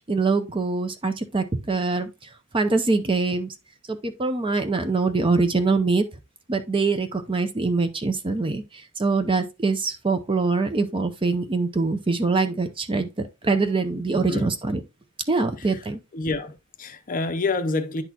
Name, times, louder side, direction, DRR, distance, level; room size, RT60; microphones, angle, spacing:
voice 1, 0.1-2.1 2.5-3.5 3.9-6.0 6.5-14.8 15.3-16.0, right 3 dB, 20° right, 0.5 m, -24 dB
voice 2, 14.1-14.5 15.6-15.9 16.1-18.0, left 3 dB, 35° left, 0.6 m, -28 dB
10.0 x 4.1 x 2.8 m
head